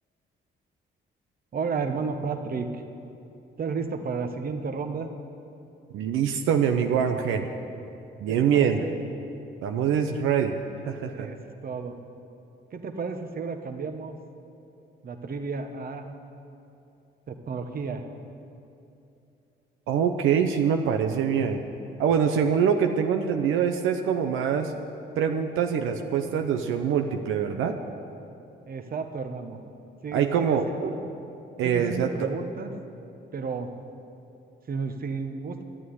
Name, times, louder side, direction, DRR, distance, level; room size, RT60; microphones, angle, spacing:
voice 1, 1.5-2.8 3.6-5.1 8.3-9.0 11.1-11.4 11.6-12.0 12.7-14.2 15.0-16.1 17.3-18.0 28.7-29.6 30.0-31.0 31.6-32.7 33.3-33.7 34.7-35.6, right 5 dB, 50° right, 6 dB, 1.2 m, -32 dB
voice 2, 5.9-7.5 8.2-8.8 9.6-10.6 10.9-11.3 19.9-21.6 22.0-24.7 25.2-27.8 30.1-30.9 31.6-32.3, right 7 dB, 85° right, 5 dB, 0.8 m, -24 dB
12.5 x 8.7 x 9.5 m, 2.7 s
cardioid pair, 90°, 20 cm